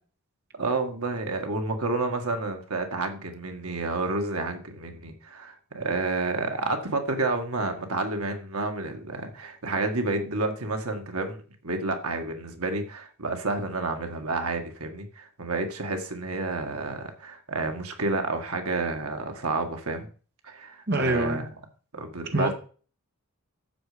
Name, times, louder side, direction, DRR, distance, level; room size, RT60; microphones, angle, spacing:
voice 1, 0.5-20.1 20.4-21.5 21.9-22.5, right 3 dB, 85° right, 5 dB, 1.8 m, -30 dB
voice 2, 20.9-21.4 22.3-22.5, right 1 dB, 50° right, 3 dB, 1.6 m, -24 dB
12.0 x 8.0 x 5.1 m, 0.40 s
head